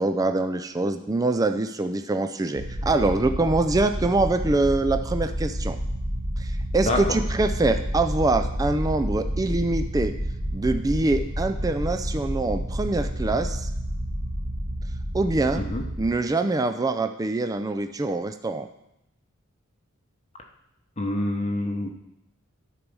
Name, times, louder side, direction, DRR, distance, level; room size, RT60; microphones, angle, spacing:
voice 1, 0.0-5.8 6.4-10.1 10.5-13.7 15.1-15.6 16.0-18.7, right 2 dB, 15° right, 7 dB, 0.4 m, -24 dB
sound 1, 2.6-16.1, equal, 65° right, 1.5 m, -29 dB
voice 2, 21.0-21.9, left 1 dB, 30° left, 1 dB, 0.8 m, -26 dB
12.0 x 4.7 x 5.4 m, 0.83 s
head